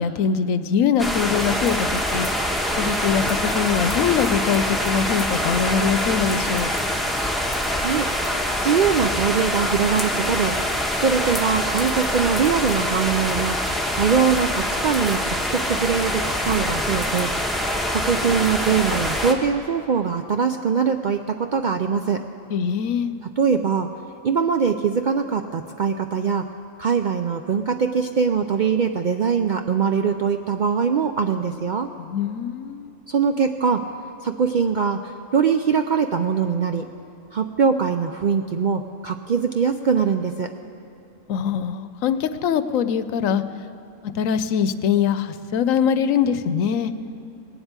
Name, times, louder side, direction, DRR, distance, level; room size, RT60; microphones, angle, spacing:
voice 1, 0.0-2.4 2.8-6.7 22.5-23.2 32.0-32.9 41.3-43.4 44.0-46.9, left 7 dB, 85° left, 12 dB, 1.0 m, -23 dB
sound 1, 1.0-19.3, left 1 dB, ahead, 0.9 m, -24 dB
voice 2, 7.8-8.1 8.6-10.7 11.0-17.3 17.9-22.2 23.4-23.9 24.2-26.5 26.8-31.9 33.1-33.9 34.2-36.9 37.3-40.5, right 6 dB, 65° right, 6 dB, 0.4 m, -22 dB
18.5 x 8.0 x 8.8 m, 2.8 s
omnidirectional pair, 1.3 m